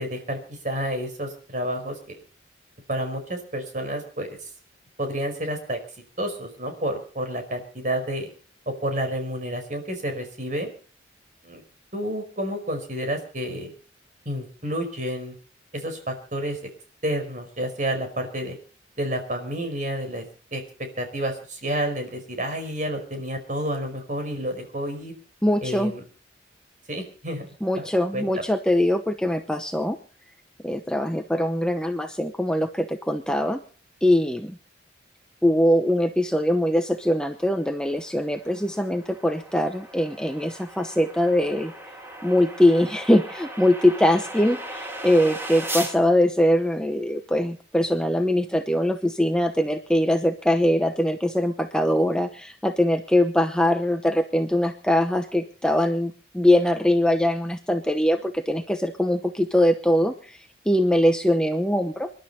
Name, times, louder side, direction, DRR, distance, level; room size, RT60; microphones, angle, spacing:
voice 1, 0.0-2.2 2.9-4.4 5.0-5.8 6.2-8.3 8.7-10.7 11.4-11.6 11.9-13.7 14.2-15.3 15.7-16.6 17.0-18.6 19.0-20.2 20.5-20.6 21.0-25.1 25.6-26.0 26.9-27.5 27.8-27.9 28.1-28.3, right 1 dB, 40° right, 6 dB, 4.9 m, -30 dB
voice 2, 25.4-25.9 27.6-30.0 30.6-33.6 34.0-34.6 35.4-41.7 42.2-62.1, left 1 dB, 5° left, 5 dB, 0.8 m, -22 dB
sound 1, 37.3-46.0, right 1 dB, 10° right, 2.2 m, -38 dB
27.0 x 11.5 x 4.3 m, 0.41 s
head